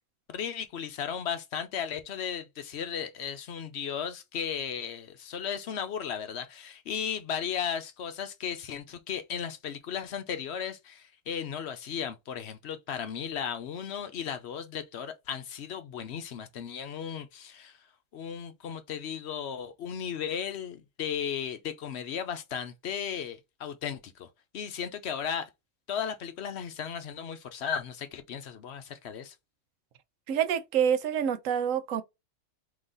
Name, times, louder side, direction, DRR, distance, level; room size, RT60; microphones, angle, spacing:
voice 1, 0.3-17.8 18.1-24.3 24.5-25.5 25.9-29.3, left 8 dB, 60° left, 0.8 m, -35 dB
voice 2, 30.3-32.0, right 8 dB, 80° right, 1.0 m, -27 dB
3.8 x 3.0 x 3.8 m
omnidirectional pair, 1.3 m